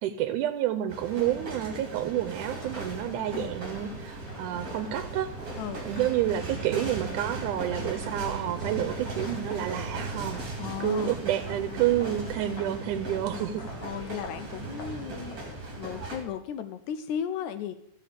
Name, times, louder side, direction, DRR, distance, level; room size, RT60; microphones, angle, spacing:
voice 1, 0.0-5.3 5.9-10.4 10.8-13.7, right 11 dB, 90° right, 9 dB, 2.1 m, -29 dB
sound 1, 0.9-16.2, right 2 dB, 30° right, 3.0 m, -38 dB
sound 2, 2.2-16.2, right 6 dB, 70° right, 2.1 m, -46 dB
sound 3, 2.4-15.6, left 2 dB, 50° left, 1.5 m, -45 dB
voice 2, 10.6-11.2 13.8-15.4 15.8-17.8, left 9 dB, 80° left, 11 dB, 1.9 m, -35 dB
15.0 x 7.7 x 5.0 m, 0.78 s
omnidirectional pair, 3.5 m